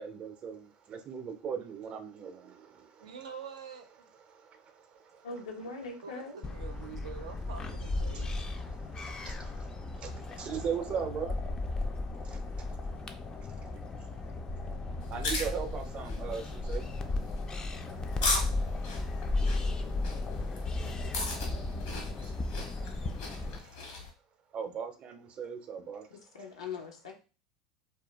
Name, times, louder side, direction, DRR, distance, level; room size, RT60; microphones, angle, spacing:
voice 1, 0.0-3.1 4.3-5.3 8.1-11.4 12.2-12.4 13.5-13.7 15.1-16.9 22.2-22.3 23.6-23.7 24.5-26.1, right 7 dB, 40° right, 7 dB, 0.5 m, -39 dB
voice 2, 3.0-4.1 6.0-8.5 14.6-14.7 15.1-15.8, right 6 dB, 90° right, 5 dB, 0.5 m, -47 dB
voice 3, 5.2-6.3 26.1-27.2, left 4 dB, 90° left, 1 dB, 0.6 m, -41 dB
sound 1, 6.4-23.6, left 2 dB, 25° left, 0.3 m, -35 dB
sound 2, 15.0-24.1, left 3 dB, 70° left, 0.9 m, -38 dB
2.2 x 2.1 x 2.9 m, 0.33 s
hypercardioid pair, 95°, 3 cm